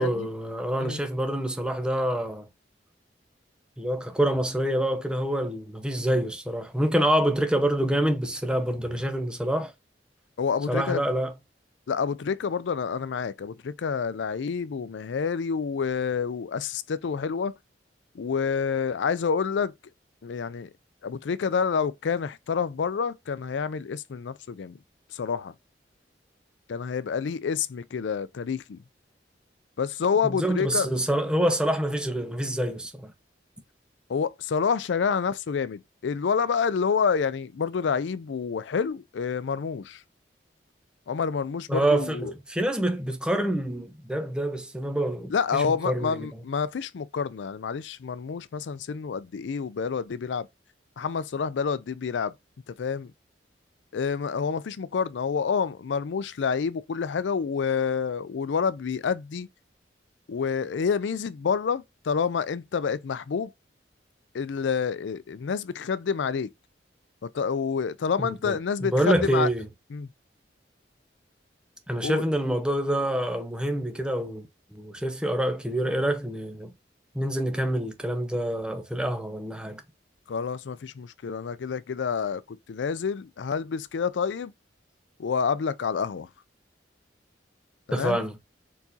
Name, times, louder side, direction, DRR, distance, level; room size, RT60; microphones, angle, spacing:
voice 1, 0.0-2.4 3.8-9.7 10.7-11.3 30.2-33.1 41.7-46.3 68.2-69.7 71.9-74.5 74.7-76.7 77.1-79.8 87.9-88.3, right 1 dB, 5° right, 0.9 m, -26 dB
voice 2, 10.4-11.0 11.9-17.5 18.1-19.7 20.2-20.7 21.0-24.8 25.1-25.5 26.7-28.8 29.8-30.9 34.1-40.0 41.1-42.3 45.3-50.5 51.0-52.3 52.8-53.1 53.9-59.5 60.3-63.5 64.3-66.5 67.3-69.5 69.9-70.1 72.0-72.2 80.3-84.5 85.2-86.3 87.9-88.2, left 6 dB, 85° left, 0.4 m, -28 dB
4.5 x 4.1 x 2.7 m
head